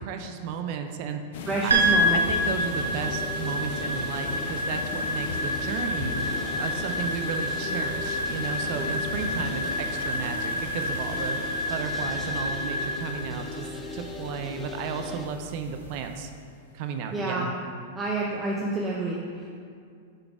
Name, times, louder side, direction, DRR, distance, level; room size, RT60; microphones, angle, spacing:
voice 1, 0.0-1.7 2.1-6.2 6.6-11.4 11.7-16.3 16.7-17.5, right 6 dB, 55° right, 6 dB, 0.5 m, -34 dB
sound 1, 1.3-15.9, left 5 dB, 65° left, 0.5 m, -39 dB
voice 2, 1.5-2.2 17.1-17.5 18.0-19.5, right 2 dB, 20° right, -3 dB, 0.7 m, -28 dB
sound 2, 1.7-15.3, left 3 dB, 10° left, 0.6 m, -40 dB
sound 3, 1.7-16.1, equal, 90° right, 0.8 m, -29 dB
6.5 x 4.0 x 4.7 m, 2.3 s
hypercardioid pair, 105°, 0 cm